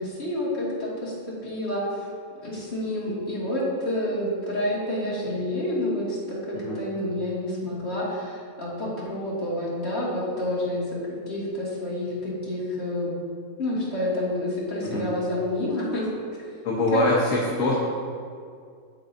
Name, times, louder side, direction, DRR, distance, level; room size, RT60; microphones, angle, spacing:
voice 1, 0.0-2.1 2.3-11.0 11.3-13.1 13.6-16.1 16.4-16.5 16.9-17.1, left 1 dB, 45° left, -8 dB, 2.2 m, -29 dB
voice 2, 16.6-17.7, left 2 dB, 65° left, -5 dB, 1.3 m, -24 dB
7.7 x 7.6 x 2.6 m, 2.2 s
omnidirectional pair, 1.6 m